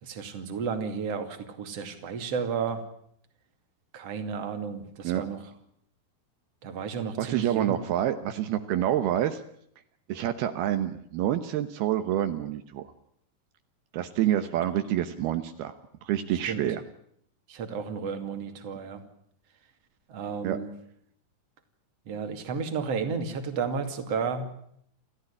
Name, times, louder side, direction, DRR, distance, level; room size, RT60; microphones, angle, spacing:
voice 1, 0.0-2.8 3.9-5.4 6.6-7.8 14.7-14.8 16.3-16.7 17.5-19.0 20.1-20.7 22.1-24.5, right 5 dB, 45° right, 7 dB, 3.2 m, -32 dB
voice 2, 7.2-9.4 10.1-12.9 13.9-15.8 16.0-16.8 20.4-20.6, right 11 dB, 75° right, 9 dB, 3.0 m, -27 dB
29.5 x 13.5 x 9.9 m, 0.70 s
omnidirectional pair, 4.6 m